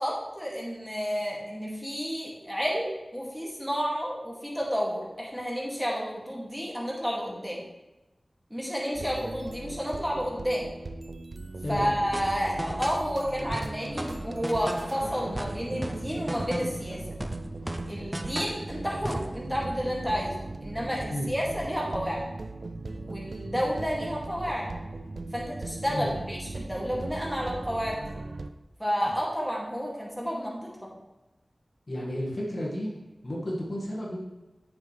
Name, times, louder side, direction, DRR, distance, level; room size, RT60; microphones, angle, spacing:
voice 1, 0.0-7.6 8.5-10.7 11.7-17.0 17.9-22.2 22.9-24.7 25.3-28.2 28.8-30.9, equal, ahead, -4 dB, 2.3 m, -31 dB
sound 1, 8.9-28.5, right 2 dB, 75° right, 0.4 m, -39 dB
sound 2, 10.9-19.0, left 1 dB, 80° left, 2.1 m, -49 dB
voice 2, 11.6-11.9 21.1-21.3 25.9-26.1 31.9-32.9 33.2-34.2, equal, 55° left, -4 dB, 1.8 m, -32 dB
sound 3, 12.1-13.1 13.5-15.0 15.3-16.9 17.2-18.6 19.0-19.3, right 1 dB, 20° right, 0.6 m, -35 dB
8.8 x 7.0 x 3.3 m, 1.0 s
wide cardioid pair, 70°, 0 cm